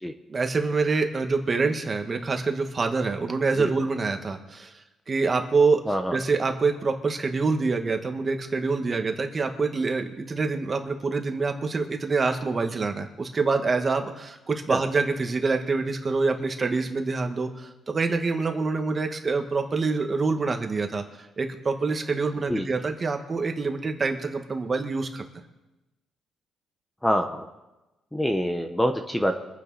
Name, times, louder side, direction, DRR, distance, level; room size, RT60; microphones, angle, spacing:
voice 1, 0.3-4.7 5.1-5.8 6.1-21.0 21.4-25.2, right 4 dB, 35° right, 5 dB, 1.8 m, -26 dB
voice 2, 5.9-6.2 14.7-14.8 22.5-22.7 27.0-27.4 28.1-29.3, equal, 5° left, 5 dB, 1.2 m, -25 dB
24.5 x 9.4 x 4.3 m, 1.0 s
cardioid pair, 90°, 0 cm